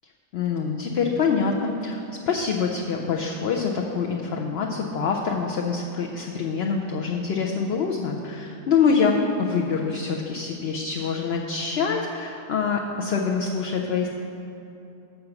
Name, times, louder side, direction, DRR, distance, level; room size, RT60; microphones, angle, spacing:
voice 1, 0.3-14.1, left 5 dB, 60° left, 0 dB, 0.7 m, -25 dB
7.0 x 6.5 x 5.8 m, 2.7 s
omnidirectional pair, 1.4 m